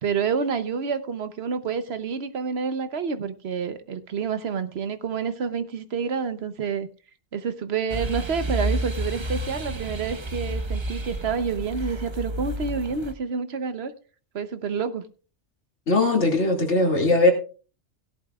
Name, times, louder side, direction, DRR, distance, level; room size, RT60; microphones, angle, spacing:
voice 1, 0.0-6.9 7.3-13.9 14.3-15.1, right 5 dB, 65° right, 1.1 m, -28 dB
sound 1, 7.9-13.1, right 1 dB, 25° right, 0.8 m, -30 dB
voice 2, 15.9-17.3, left 2 dB, 75° left, 2.5 m, -19 dB
16.5 x 11.5 x 2.3 m
omnidirectional pair, 1.2 m